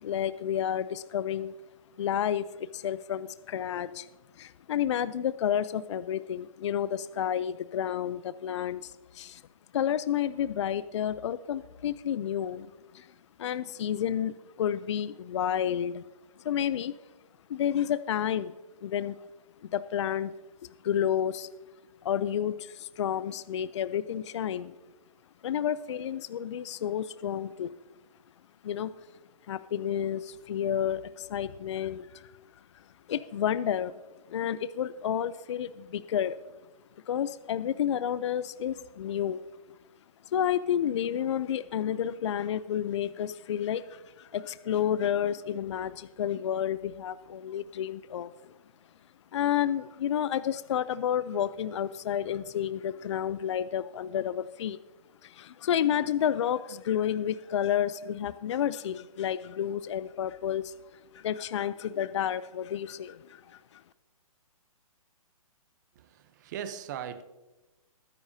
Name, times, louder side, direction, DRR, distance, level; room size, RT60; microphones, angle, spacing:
voice 1, 0.0-1.5 2.0-4.1 4.4-9.4 9.7-16.0 16.4-16.9 17.5-18.5 18.8-19.2 19.6-20.3 20.6-21.5 22.0-24.8 25.4-27.7 28.6-28.9 29.5-32.3 32.7-33.9 34.3-36.4 37.1-39.4 40.3-48.5 49.3-54.8 55.2-60.7 61.1-63.8, left 9 dB, 50° left, 0.4 m, -30 dB
voice 2, 65.9-67.2, right 9 dB, 30° right, 0.7 m, -39 dB
20.5 x 9.9 x 2.7 m
hypercardioid pair, 155°, 19 cm